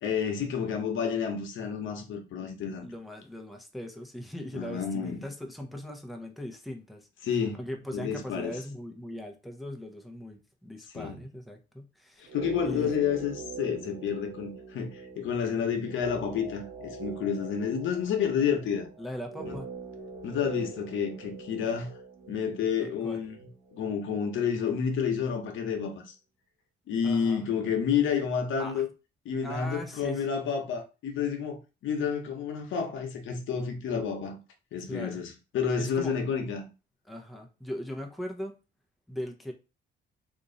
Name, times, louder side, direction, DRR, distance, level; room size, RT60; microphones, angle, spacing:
voice 1, 0.0-2.9 4.5-5.2 7.2-7.6 7.9-8.6 10.9-11.2 12.3-14.9 15.2-18.9 19.4-19.5 20.2-21.9 22.3-23.4 23.7-26.1 26.9-28.9 29.2-31.6 31.8-34.4 34.7-36.6, left 7 dB, 75° left, 0.9 m, -30 dB
voice 2, 2.8-7.1 7.6-12.3 12.6-12.9 19.0-19.7 22.8-23.2 27.0-27.5 28.6-28.8 29.4-30.3 34.9-35.2 35.8-36.2 37.1-38.5 39.1-39.5, equal, ahead, 0.7 m, -39 dB
sound 1, 12.2-24.4 24.6-24.7, right 4 dB, 65° right, 1.3 m, -43 dB
3.0 x 2.5 x 3.8 m
cardioid pair, 90°, 20 cm